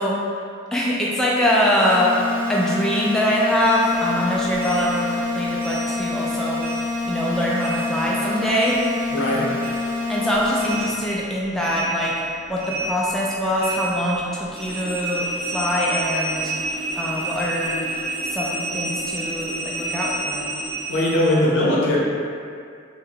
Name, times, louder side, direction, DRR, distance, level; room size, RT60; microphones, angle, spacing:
voice 1, 0.0-8.8 10.1-12.2 12.5-16.5 17.0-17.9 18.3-20.5, equal, ahead, -5 dB, 0.3 m, -23 dB
sound 1, 1.8-10.8, left 3 dB, 25° right, 0.8 m, -27 dB
sound 2, 3.6-6.3 6.6-9.3 9.6-21.4, right 2 dB, 45° right, 0.6 m, -31 dB
voice 2, 9.1-9.4 20.9-22.0, left 1 dB, 65° left, -5 dB, 0.6 m, -19 dB
2.8 x 2.1 x 3.8 m, 2.3 s
head